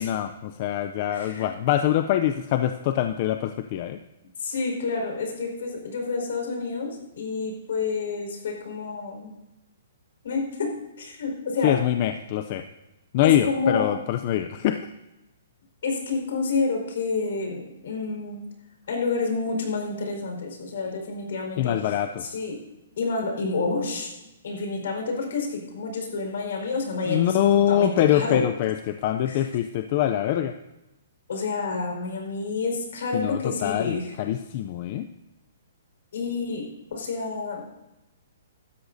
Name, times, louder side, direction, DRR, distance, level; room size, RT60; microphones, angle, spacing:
voice 1, 0.0-4.0 11.6-12.6 13.1-14.9 21.6-22.3 27.1-30.5 33.1-35.1, left 11 dB, 35° left, 8 dB, 0.5 m, -24 dB
voice 2, 1.1-1.5 4.4-9.3 10.2-11.7 13.2-13.9 15.8-18.4 18.9-21.8 22.3-22.6 23.0-24.1 24.4-28.4 29.3-29.4 31.3-34.1 36.1-37.7, left 4 dB, 65° left, 1 dB, 4.7 m, -29 dB
16.5 x 13.0 x 2.7 m, 0.97 s
hypercardioid pair, 165°, 0 cm